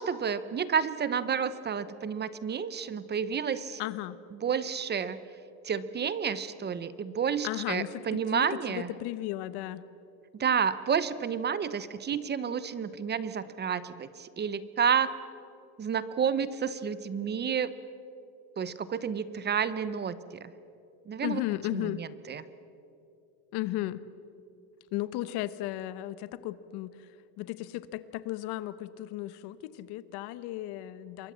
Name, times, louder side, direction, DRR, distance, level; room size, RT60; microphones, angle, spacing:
voice 1, 0.0-3.8 4.4-5.2 5.6-8.9 10.3-15.1 15.8-17.7 18.6-20.5 21.1-21.4 21.7-22.4, right 7 dB, 25° right, 15 dB, 0.8 m, -30 dB
voice 2, 3.8-4.2 7.4-9.8 21.2-22.0 23.5-24.0 24.9-26.9 27.4-31.3, left 15 dB, 65° left, 15 dB, 1.1 m, -35 dB
27.0 x 22.5 x 7.4 m, 2.8 s
cardioid pair, 140°, 42 cm